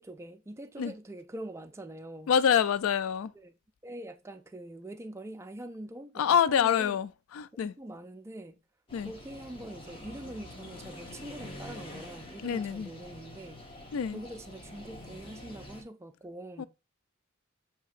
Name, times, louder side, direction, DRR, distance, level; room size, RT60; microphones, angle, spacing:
voice 1, 0.0-2.3 3.4-3.5 3.8-7.0 7.5-8.6 9.0-13.6 14.1-16.7, right 1 dB, 15° right, 0.3 m, -44 dB
voice 2, 2.3-3.3 6.2-7.7 8.9-9.1 12.4-12.9 13.9-14.2 16.6-16.7, left 8 dB, 70° left, 0.3 m, -26 dB
sound 1, 8.9-15.8, left 1 dB, 25° left, 1.0 m, -46 dB
7.4 x 2.9 x 2.4 m
head